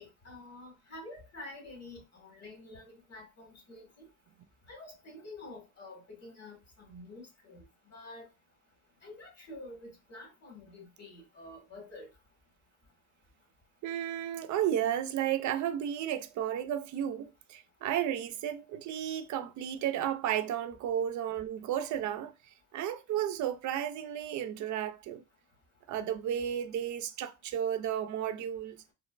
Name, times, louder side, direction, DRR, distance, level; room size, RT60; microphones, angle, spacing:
voice 1, 0.0-4.1 4.7-8.3 9.0-12.1, left 2 dB, 55° left, 1.8 m, -48 dB
voice 2, 13.8-22.3 22.7-25.2 25.9-28.8, right 10 dB, 70° right, 0.5 m, -33 dB
3.8 x 2.0 x 2.4 m
cardioid pair, 90°, 30 cm